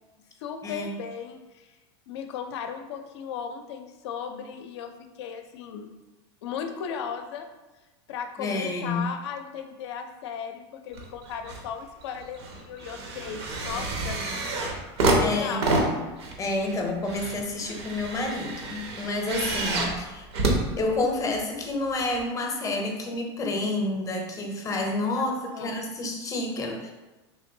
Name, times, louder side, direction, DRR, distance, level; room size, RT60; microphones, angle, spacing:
voice 1, 0.4-1.7 2.1-4.9 5.2-5.9 6.4-7.5 8.1-14.2 15.1-15.8 25.1-25.7, left 7 dB, 80° left, 6 dB, 0.4 m, -36 dB
voice 2, 8.4-9.0 15.2-15.8 16.4-20.3 20.8-26.9, left 2 dB, 25° left, 2 dB, 0.5 m, -29 dB
sound 1, 10.9-11.7 12.0-21.4 22.2-22.3, right 2 dB, 80° right, 0.7 m, -28 dB
3.3 x 2.6 x 2.6 m, 1.1 s
supercardioid pair, 115°, 14 cm